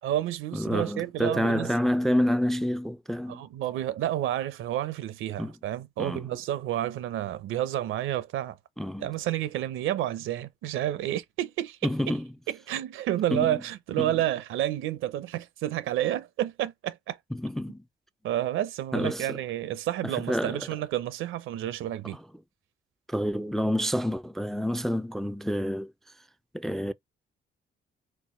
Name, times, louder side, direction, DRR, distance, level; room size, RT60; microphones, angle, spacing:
voice 1, 0.0-1.7 3.3-8.6 9.0-12.2 12.5-17.2 18.2-22.2, right 13 dB, 85° right, 0.7 m, -30 dB
voice 2, 0.5-3.4 5.4-5.5 6.0-6.2 8.8-9.1 11.8-12.3 13.3-13.6 14.0-14.1 17.3-17.8 18.9-19.4 20.0-20.6 23.1-25.9 26.5-26.9, equal, ahead, 0.3 m, -28 dB
4.5 x 2.2 x 4.3 m
cardioid pair, 90°, 20 cm